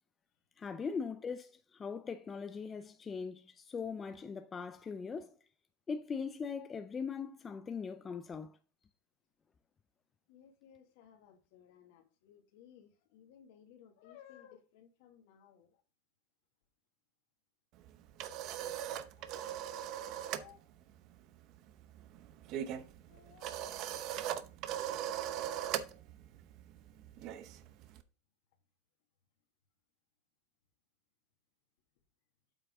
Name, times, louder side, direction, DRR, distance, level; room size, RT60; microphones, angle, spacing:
voice 1, 0.6-5.3 5.9-8.6, left 5 dB, 20° left, 0.6 m, -40 dB
voice 2, 10.3-15.8 18.4-18.7 19.2-19.5 20.3-20.7 22.6-22.8 23.1-23.7, left 9 dB, 70° left, 2.1 m, -60 dB
sound 1, 17.8-20.5 20.8-21.1 21.3-28.0, right 11 dB, 50° right, 0.8 m, -40 dB
8.2 x 5.7 x 3.6 m
supercardioid pair, 130°, 0 cm